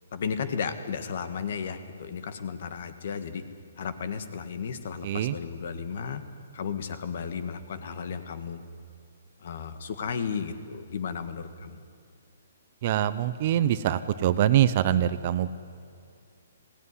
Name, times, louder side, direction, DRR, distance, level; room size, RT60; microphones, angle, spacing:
voice 1, 0.1-3.4 3.8-6.2 6.5-8.6 9.4-11.9, left 6 dB, 50° left, 10 dB, 1.6 m, -34 dB
voice 2, 5.0-5.3 12.8-15.5, right 11 dB, 35° right, 14 dB, 0.7 m, -24 dB
21.0 x 17.0 x 9.8 m, 2.4 s
hypercardioid pair, 165°, 0 cm